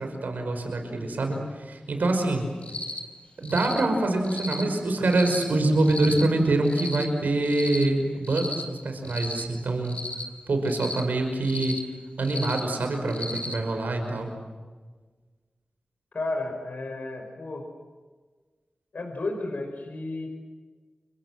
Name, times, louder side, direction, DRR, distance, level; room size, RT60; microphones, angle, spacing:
voice 1, 0.0-2.5 3.4-10.0 10.5-11.8 12.2-14.3, right 2 dB, 85° right, 4 dB, 5.5 m, -25 dB
Cricket, 2.6-3.0 3.4-3.8 4.2-4.6 5.1-5.4 5.8-6.2 6.7-7.0 7.4-7.8 8.2-8.6 9.0-9.4 9.8-10.2 10.7-11.0 11.4-11.8 12.2-12.6 13.1-13.5, left 2 dB, 45° left, 3.9 m, -35 dB
voice 2, 16.1-17.7 18.9-20.3, left 2 dB, 70° left, 3 dB, 5.7 m, -32 dB
29.5 x 24.5 x 7.7 m, 1.4 s
cardioid pair, 50°, 3 cm